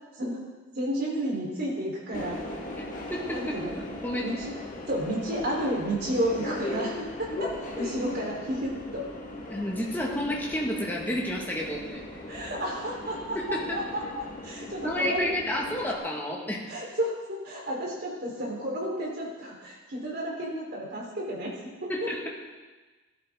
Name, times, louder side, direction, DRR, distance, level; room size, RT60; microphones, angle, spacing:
voice 1, 0.8-2.4 3.3-3.7 4.2-4.5 4.9-7.5 7.7-9.0 12.3-14.0 14.4-15.3 16.7-21.5 21.8-21.9, right 1 dB, 50° right, -3 dB, 3.8 m, -31 dB
Subway metro underground, 2.1-16.0, left 1 dB, 40° left, 1.8 m, -38 dB
voice 2, 3.1-4.3 9.5-12.2 13.4-13.8 14.8-16.7 21.9-22.3, left 1 dB, 10° left, -3 dB, 1.8 m, -31 dB
17.0 x 11.5 x 3.7 m, 1.3 s
head